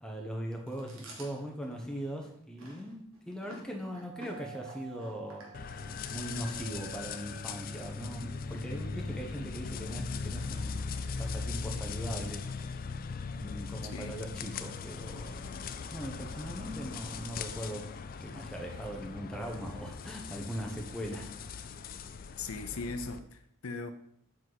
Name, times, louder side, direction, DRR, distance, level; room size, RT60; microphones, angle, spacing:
voice 1, 0.0-5.5 6.1-12.4 13.3-15.6 15.9-17.9 18.2-21.3, equal, 5° left, 1.0 m, -40 dB
Chewing mastication, 0.7-7.7, right 1 dB, 75° right, 1.6 m, -52 dB
Doorbell, 4.0-8.9, right 9 dB, 50° right, 0.7 m, -52 dB
sound 1, 5.5-23.2, left 5 dB, 40° left, 0.3 m, -39 dB
voice 2, 22.4-23.9, left 3 dB, 85° left, 0.6 m, -39 dB
7.3 x 4.6 x 4.1 m
head